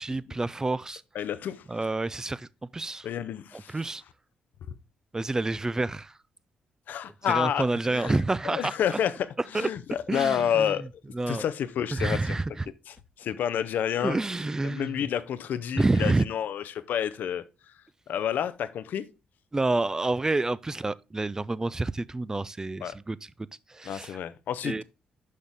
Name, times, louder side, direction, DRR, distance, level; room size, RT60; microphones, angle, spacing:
voice 1, 0.0-1.0 1.7-3.1 3.5-4.0 5.1-6.2 7.3-9.0 9.5-9.7 10.1-10.9 11.1-11.4 11.9-12.7 14.0-15.1 15.7-16.2 19.5-23.3 23.7-24.2 24.6-24.8, right 2 dB, 20° right, 0.4 m, -28 dB
voice 2, 1.1-1.6 3.0-3.7 6.9-8.2 8.4-9.3 9.5-10.9 11.3-12.2 13.2-14.2 14.6-17.4 18.1-19.0 22.8-22.9 23.9-24.8, left 9 dB, 75° left, 0.6 m, -29 dB
6.4 x 5.7 x 3.5 m
supercardioid pair, 65°, 3 cm